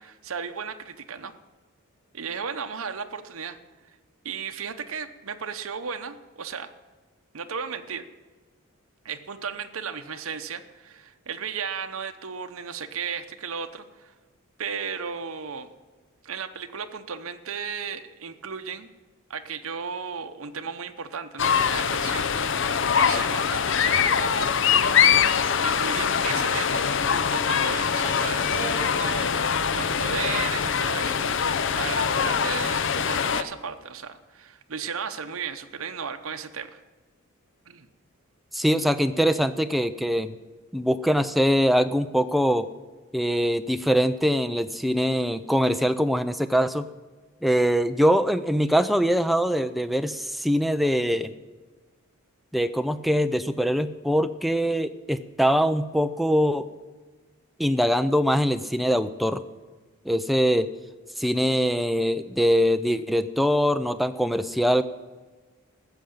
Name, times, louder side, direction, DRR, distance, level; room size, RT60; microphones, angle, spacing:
voice 1, 0.0-1.3 2.1-3.6 3.9-4.0 4.2-6.7 7.3-8.1 9.0-14.1 14.6-15.7 16.2-18.9 19.3-22.3 22.5-24.9 25.6-31.2 31.7-36.8 37.7-37.9, right 6 dB, 75° right, 8 dB, 0.8 m, -35 dB
sound 1, 21.4-33.4, left 7 dB, 55° left, 0.6 m, -23 dB
voice 2, 38.5-40.3 40.7-42.7 43.1-46.9 47.4-51.3 52.5-56.7 57.6-59.4 60.1-60.7 61.2-64.8, equal, ahead, 9 dB, 0.4 m, -23 dB
15.0 x 6.5 x 8.7 m, 1.3 s
head